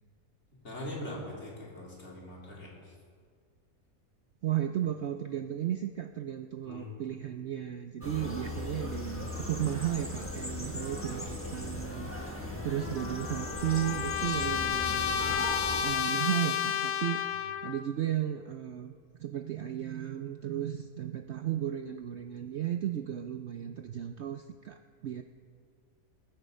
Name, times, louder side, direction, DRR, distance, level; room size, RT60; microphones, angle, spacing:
voice 1, 0.6-2.9 6.6-6.9 12.4-12.9, left 1 dB, 45° left, -4 dB, 3.3 m, -42 dB
voice 2, 4.4-15.5 15.8-18.9 19.2-25.2, right 11 dB, 65° right, 7 dB, 0.7 m, -34 dB
sound 1, 8.0-15.8, left 1 dB, 10° left, 1.1 m, -38 dB
Trumpet, 13.0-17.8, left 9 dB, 85° left, 1.1 m, -31 dB
20.0 x 7.8 x 5.2 m, 2.1 s
omnidirectional pair, 1.6 m